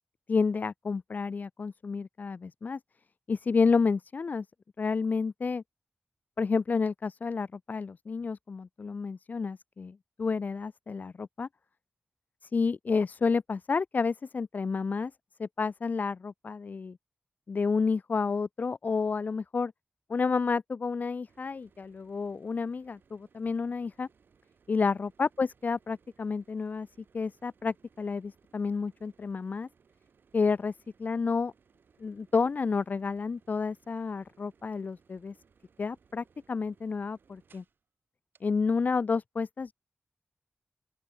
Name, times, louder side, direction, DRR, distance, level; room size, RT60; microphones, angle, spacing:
voice 1, 0.3-2.8 3.3-4.5 4.8-5.6 6.4-11.5 12.5-15.1 15.4-17.0 17.5-19.7 20.1-24.1 24.7-26.9 27.1-29.7 30.3-30.7 31.0-31.5 32.0-35.3 35.8-37.6 38.4-39.7, left 4 dB, 55° left, 0.8 m, -30 dB
sound 1, 21.3-37.8 38.3-38.4, right 6 dB, 85° right, 4.9 m, -66 dB
open air
wide cardioid pair, 110°, 3 cm